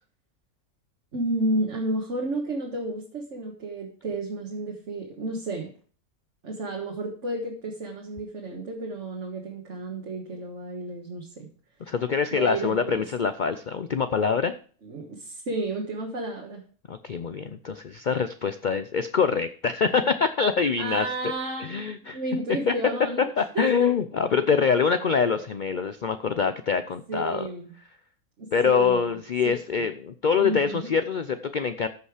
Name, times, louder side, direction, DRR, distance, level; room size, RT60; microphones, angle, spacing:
voice 1, 1.1-5.7 6.4-11.5 12.3-13.0 14.8-16.6 20.8-23.9 25.2-25.4 27.1-27.7 28.4-29.2 29.7-29.8 30.4-30.9, right 2 dB, 50° right, 0 dB, 1.7 m, -32 dB
voice 2, 11.9-14.5 16.9-21.3 21.6-22.2 22.7-22.8 23.4-27.5 28.5-31.9, left 6 dB, 90° left, 10 dB, 0.4 m, -25 dB
14.0 x 5.5 x 4.9 m, 0.43 s
omnidirectional pair, 1.6 m